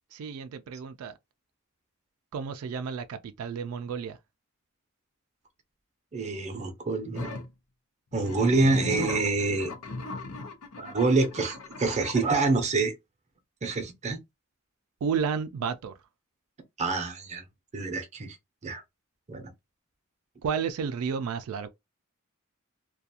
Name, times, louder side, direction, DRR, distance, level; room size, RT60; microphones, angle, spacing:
voice 1, 0.1-1.1 2.3-4.2 15.0-15.9 20.4-21.7, right 6 dB, 90° right, 0.3 m, -31 dB
voice 2, 6.1-7.3 8.1-9.7 10.8-12.9 13.6-14.2 16.8-17.4 17.7-18.4 18.6-18.8 19.3-19.5, right 3 dB, 35° right, 0.6 m, -26 dB
sound 1, 7.1-7.5 8.1-12.5, left 2 dB, 90° left, 0.6 m, -38 dB
2.4 x 2.2 x 2.7 m
head